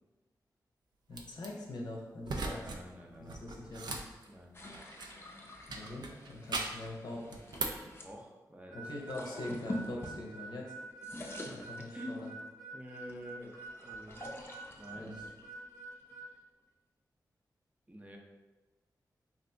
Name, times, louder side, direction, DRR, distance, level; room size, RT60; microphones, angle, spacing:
voice 1, 1.1-2.6 3.2-4.0 5.7-7.4 8.7-10.7 11.5-12.3 15.0-15.2, left 2 dB, 70° left, -1 dB, 0.7 m, -43 dB
sound 1, 1.1-1.5 2.2-2.8 3.1-5.3 5.7-6.9 7.3-7.9, right 3 dB, 70° right, 0.4 m, -39 dB
voice 2, 2.4-3.4 4.2-4.5 8.0-8.8 11.4-11.5 11.9-12.3 12.7-14.3 14.8-15.1 17.9-18.2, equal, 20° right, 0 dB, 0.6 m, -48 dB
sound 2, 4.5-8.1 8.9-10.6 10.9-12.4 12.9-16.4, left 1 dB, 30° left, 0.5 m, -46 dB
Harmonica, 8.7-16.3, right 3 dB, ahead, 0.9 m, -47 dB
2.7 x 2.5 x 3.4 m, 1.2 s
cardioid pair, 55°, 8 cm